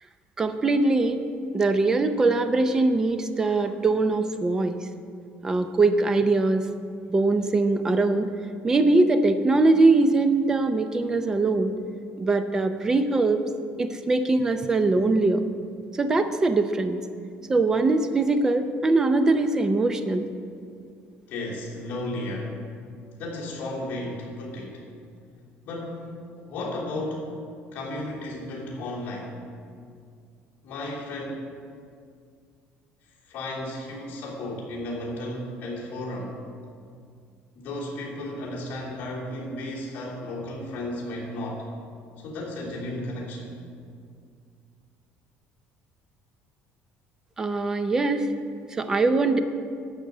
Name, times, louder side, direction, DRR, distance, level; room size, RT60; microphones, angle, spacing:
voice 1, 0.4-1.2 1.5-4.8 5.4-6.6 7.1-8.3 8.6-11.7 12.2-13.4 13.8-15.4 16.0-17.0 17.5-20.2 47.4-48.3 48.8-49.4, right 3 dB, 15° right, 9 dB, 0.5 m, -22 dB
voice 2, 21.3-22.6 23.2-24.8 25.6-26.1 26.4-27.3 27.7-29.3 30.6-31.4 33.3-36.4 37.5-41.7 42.2-43.6, left 1 dB, 45° left, -8 dB, 3.2 m, -34 dB
12.0 x 5.2 x 7.9 m, 2.3 s
cardioid pair, 180°, 4 cm